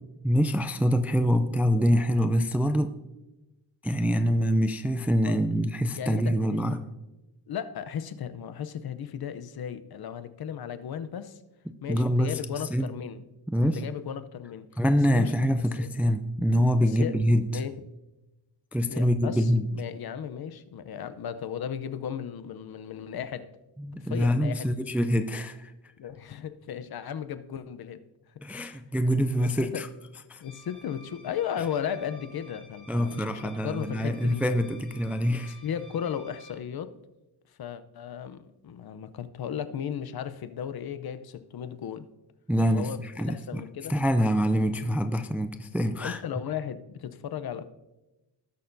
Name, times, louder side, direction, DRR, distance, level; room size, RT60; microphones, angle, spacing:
voice 1, 0.2-2.9 3.8-6.9 11.7-12.4 12.7-12.9 13.5-13.8 14.8-17.5 18.7-19.7 23.8-25.7 28.4-29.9 30.3-30.4 32.9-35.6 42.5-43.6 43.9-46.2, equal, 5° right, 0.3 m, -25 dB
voice 2, 6.0-6.6 7.5-11.4 11.8-13.2 13.6-14.7 15.1-15.3 15.8-15.9 16.8-17.2 17.5-17.7 18.9-23.5 23.9-24.7 26.0-28.0 28.5-28.8 29.4-29.5 29.7-29.8 30.4-34.4 35.5-36.9 37.6-42.1 42.7-43.9 46.0-47.7, left 8 dB, 55° left, 0.7 m, -35 dB
sound 1, 30.4-36.5, left 1 dB, 20° left, 3.0 m, -53 dB
18.0 x 6.5 x 2.6 m
wide cardioid pair, 130°, 45 cm